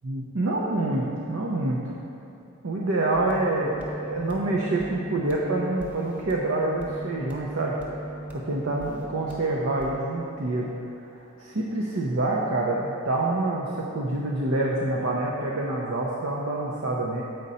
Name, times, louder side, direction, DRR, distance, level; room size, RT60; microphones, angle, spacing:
voice 1, 0.0-1.9 2.6-7.8 8.3-10.7 11.4-17.2, right 2 dB, 80° right, -3 dB, 0.7 m, -27 dB
sound 1, 3.1-9.9, right 1 dB, 10° right, 1.0 m, -38 dB
7.8 x 5.1 x 4.2 m, 2.9 s
head